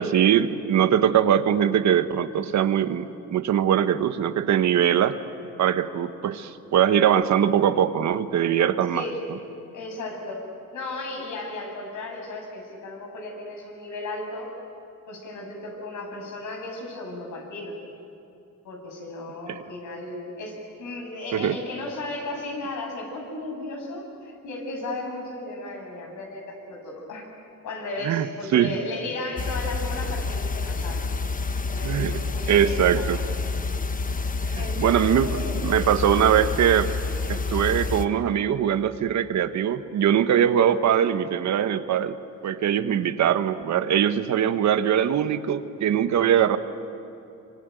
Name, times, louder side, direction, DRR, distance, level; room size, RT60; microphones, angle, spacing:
voice 1, 0.0-5.2 5.6-9.0 19.5-19.6 21.3-21.6 28.0-28.3 28.5-28.7 31.8-32.2 32.5-33.2 34.4-35.3 35.6-36.9 37.3-42.2 42.4-46.6, right 9 dB, 65° right, 11 dB, 1.3 m, -22 dB
voice 2, 9.7-10.5 10.7-14.5 15.1-17.8 18.6-27.3 27.6-31.1 31.7-33.3 34.5-35.8 36.1-36.3, left 2 dB, 75° left, 1 dB, 7.1 m, -35 dB
sound 1, 29.4-38.0, left 3 dB, 25° left, 1.2 m, -28 dB
25.5 x 25.0 x 9.2 m, 2.7 s
cardioid pair, 90°, 30 cm